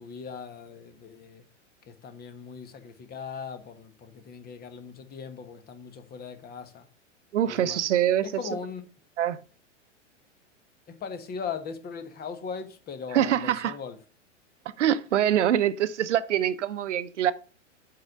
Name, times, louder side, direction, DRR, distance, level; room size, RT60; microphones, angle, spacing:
voice 1, 0.0-1.5 1.9-6.9 7.5-7.8 8.2-8.8 10.9-14.0, left 6 dB, 25° left, 1.5 m, -39 dB
voice 2, 7.3-8.3 9.2-9.4 13.1-13.7 14.8-17.3, right 10 dB, 70° right, 1.0 m, -24 dB
8.4 x 4.9 x 6.6 m
hypercardioid pair, 105°, 37 cm